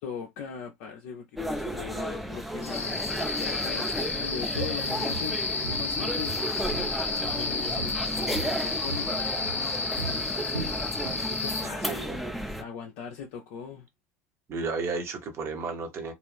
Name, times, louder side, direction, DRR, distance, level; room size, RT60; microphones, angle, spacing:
voice 1, 0.0-6.5 7.0-10.3 11.3-12.1 12.6-13.9, left 7 dB, 50° left, 0.5 m, -40 dB
sound 1, 1.4-12.6, equal, ahead, 0.5 m, -34 dB
sound 2, 2.6-11.6, left 4 dB, 30° left, 0.9 m, -31 dB
Walk footsteps, 4.0-4.2 4.5-5.9 6.2-7.5 7.8-11.3 11.6-11.9 12.3-12.4, right 5 dB, 80° right, 0.9 m, -39 dB
voice 2, 11.8-12.2 14.5-16.1, right 4 dB, 35° right, 0.9 m, -33 dB
2.4 x 2.4 x 3.3 m
figure-of-eight pair, 75°, 8 cm